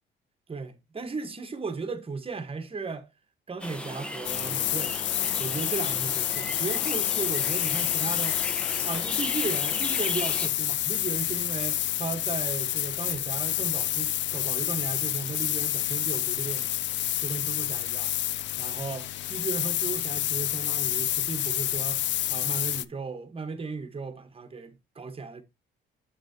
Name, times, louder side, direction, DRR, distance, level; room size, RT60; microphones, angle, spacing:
voice 1, 0.5-3.1 3.5-5.0 5.4-8.4 8.9-16.7 17.2-18.1 18.6-25.4, right 4 dB, 30° right, 1.4 m, -36 dB
sound 1, 3.6-10.5, equal, 5° left, 1.0 m, -37 dB
sound 2, 4.2-22.8, left 13 dB, 65° left, 0.4 m, -28 dB
7.6 x 6.2 x 2.9 m
cardioid pair, 90°, 20 cm